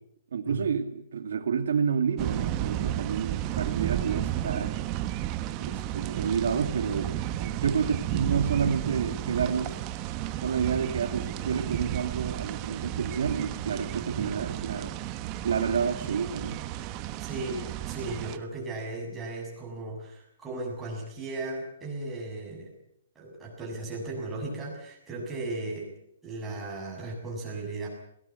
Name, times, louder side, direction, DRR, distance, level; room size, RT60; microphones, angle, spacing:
voice 1, 0.3-4.7 5.6-7.1 7.4-9.8 10.4-14.9 15.4-16.6, right 6 dB, 75° right, 7 dB, 2.1 m, -29 dB
sound 1, 2.2-18.4, right 13 dB, 25° right, 1.2 m, -33 dB
voice 2, 17.2-22.7 23.2-25.9 26.2-27.9, right 2 dB, 10° right, -2 dB, 7.2 m, -36 dB
22.0 x 18.5 x 8.4 m, 0.73 s
hypercardioid pair, 165°, 0 cm